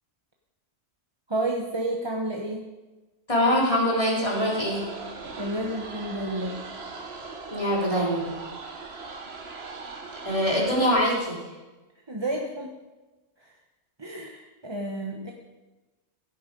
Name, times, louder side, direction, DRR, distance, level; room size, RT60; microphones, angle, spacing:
voice 1, 1.3-2.7 5.4-6.6 12.1-12.7 13.4-13.5 14.0-15.3, right 1 dB, 25° right, 0 dB, 1.0 m, -30 dB
voice 2, 3.3-4.8 7.5-8.3 10.2-11.4, equal, 30° left, -4 dB, 3.6 m, -23 dB
sound 1, 4.3-11.0, right 4 dB, 60° right, 1.5 m, -39 dB
16.5 x 9.2 x 5.2 m, 1.2 s
omnidirectional pair, 1.2 m